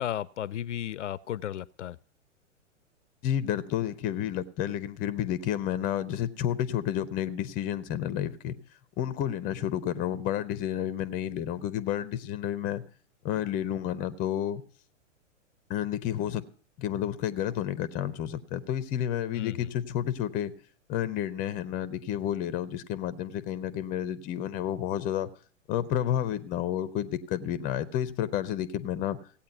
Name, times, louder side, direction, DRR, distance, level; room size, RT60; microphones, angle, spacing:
voice 1, 0.0-2.0 19.3-19.7, left 11 dB, 65° left, 0.5 m, -34 dB
voice 2, 3.2-8.6 9.0-12.8 13.2-14.6 15.7-16.4 16.8-20.5 20.9-25.3 25.7-29.2, left 11 dB, 20° left, 0.6 m, -30 dB
16.0 x 8.6 x 5.8 m
figure-of-eight pair, 110°, 38 cm